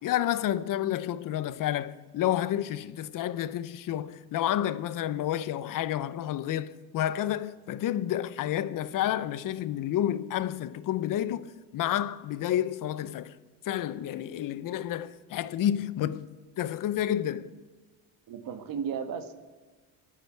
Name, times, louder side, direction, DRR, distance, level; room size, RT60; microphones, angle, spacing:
voice 1, 0.0-13.4 13.6-16.3 16.6-17.5, left 11 dB, 55° left, 0.8 m, -30 dB
voice 2, 18.3-19.3, right 7 dB, 55° right, 1.8 m, -34 dB
25.5 x 8.8 x 4.6 m
cardioid pair, 105°, 40 cm